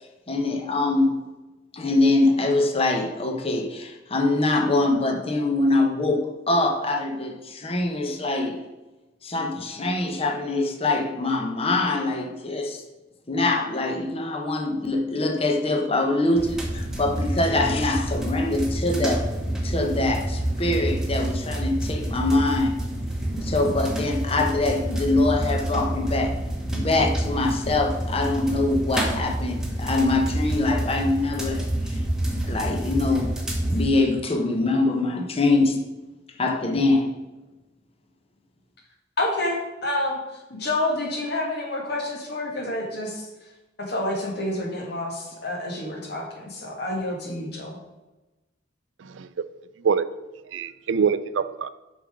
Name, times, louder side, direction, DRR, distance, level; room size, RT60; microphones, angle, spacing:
voice 1, 0.3-1.2 1.7-8.6 9.2-12.8 13.3-22.7 23.4-26.4 26.7-32.0 32.5-35.8 36.4-37.1, left 2 dB, 30° left, 3 dB, 0.9 m, -24 dB
sound 1, 16.3-33.9, right 1 dB, 5° right, 1.2 m, -28 dB
voice 2, 39.2-40.2 40.5-43.3 43.8-47.8, left 1 dB, 60° left, 0 dB, 1.9 m, -28 dB
voice 3, 50.5-51.7, right 6 dB, 85° right, 14 dB, 0.4 m, -24 dB
6.6 x 5.6 x 5.0 m, 1.1 s
head